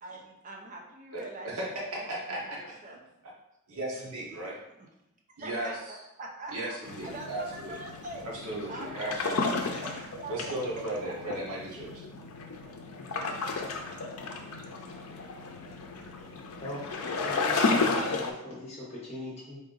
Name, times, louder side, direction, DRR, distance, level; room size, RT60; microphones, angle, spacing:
voice 1, 0.0-1.5 1.8-2.1 2.5-3.0 4.4-4.9 5.4-6.8 7.0-8.3 8.7-9.0 9.7-11.1, right 2 dB, 35° right, 0 dB, 0.6 m, -43 dB
voice 2, 1.1-3.3 3.7-4.6 5.4-6.0 6.5-7.8 8.2-9.6 9.9-12.0, right 1 dB, 85° right, -3 dB, 1.1 m, -36 dB
sound 1, 6.8-18.3, left 3 dB, 75° left, 0.5 m, -33 dB
voice 3, 17.2-19.6, left 1 dB, 30° left, -5 dB, 1.0 m, -41 dB
3.9 x 2.6 x 3.8 m, 0.87 s
head